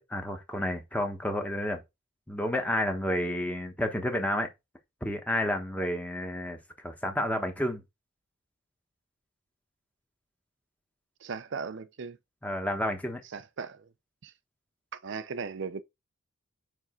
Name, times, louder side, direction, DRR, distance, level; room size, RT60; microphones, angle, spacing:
voice 1, 0.0-1.8 2.3-4.5 5.0-6.6 6.8-7.8 12.4-13.2, left 1 dB, 5° left, 1.1 m, -30 dB
voice 2, 11.2-12.2 13.3-13.9 14.2-14.3 14.9-15.8, right 5 dB, 55° right, 0.5 m, -37 dB
5.3 x 4.8 x 3.7 m
head